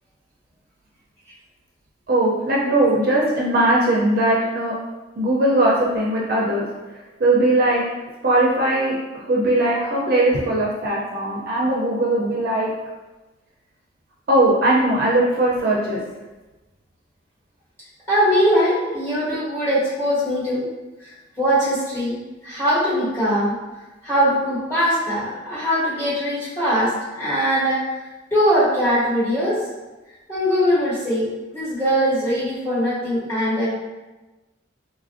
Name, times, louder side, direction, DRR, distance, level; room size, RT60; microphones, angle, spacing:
voice 1, 2.1-4.7 5.2-6.6 7.2-7.8 8.2-9.0 9.3-12.7 14.3-16.0, right 1 dB, 50° right, -3 dB, 0.4 m, -19 dB
voice 2, 18.1-20.7 21.0-23.5 24.0-27.8 28.3-29.6 30.3-31.3 31.5-33.7, equal, 15° left, -12 dB, 1.3 m, -21 dB
3.0 x 2.4 x 2.4 m, 1.1 s
head